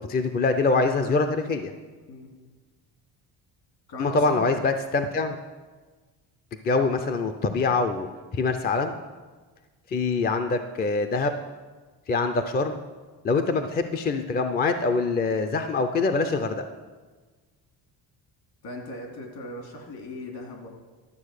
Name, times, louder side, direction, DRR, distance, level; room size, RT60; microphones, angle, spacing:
voice 1, 0.1-1.7 4.0-5.4 6.6-8.1 8.3-9.0 9.9-11.3 12.1-12.8 13.2-16.6, left 3 dB, 25° left, 7 dB, 0.4 m, -24 dB
voice 2, 3.9-4.5 18.6-20.7, left 1 dB, 60° left, 1 dB, 2.7 m, -38 dB
12.0 x 7.5 x 6.5 m, 1.4 s
cardioid pair, 165°, 41 cm